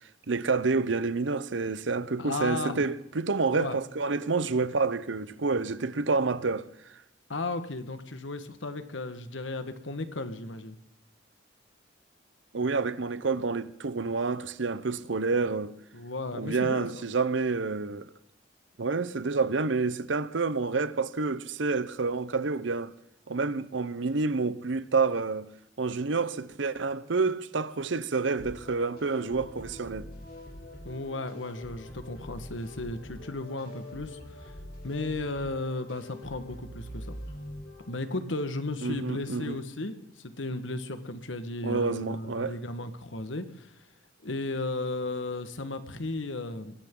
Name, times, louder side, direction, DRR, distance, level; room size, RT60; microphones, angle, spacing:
voice 1, 0.3-6.7 12.5-15.7 16.3-18.1 18.8-22.9 23.3-25.5 25.8-30.1 38.8-39.6 41.6-42.5, right 4 dB, 75° right, 0.8 m, -28 dB
voice 2, 2.2-2.8 3.5-3.8 7.3-10.8 15.9-17.1 30.8-34.5 34.8-37.2 37.9-43.8 44.2-46.7, left 2 dB, 85° left, 1.5 m, -35 dB
sound 1, 28.4-38.5, left 1 dB, 50° left, 3.5 m, -45 dB
22.0 x 16.5 x 3.9 m
head